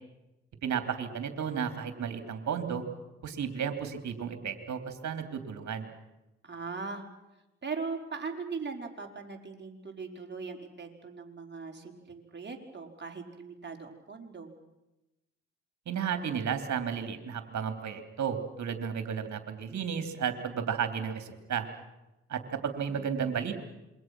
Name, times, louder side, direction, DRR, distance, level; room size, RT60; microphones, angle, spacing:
voice 1, 0.6-2.8 3.2-5.9 15.9-21.7 22.3-23.5, right 7 dB, 60° right, 7 dB, 3.3 m, -33 dB
voice 2, 6.4-7.0 7.6-14.5 22.9-23.5, right 4 dB, 35° right, 1 dB, 4.9 m, -40 dB
27.5 x 23.5 x 6.2 m, 0.99 s
hypercardioid pair, 45°, 32 cm